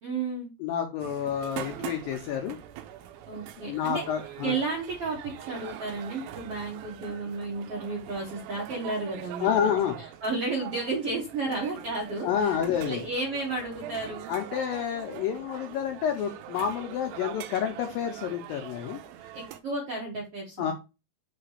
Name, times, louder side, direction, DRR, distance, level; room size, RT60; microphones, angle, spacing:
voice 1, 0.0-0.5 3.3-4.0 4.4-9.7 10.2-12.5 12.8-14.3 19.3-20.7, right 3 dB, 60° right, -2 dB, 1.6 m, -32 dB
voice 2, 0.6-2.6 3.6-4.5 9.4-10.0 12.2-13.0 14.3-19.0 20.6-20.7, left 8 dB, 80° left, 4 dB, 2.1 m, -29 dB
sound 1, 1.0-19.6, right 11 dB, 80° right, 2.2 m, -43 dB
5.8 x 3.3 x 5.5 m, 0.28 s
omnidirectional pair, 4.7 m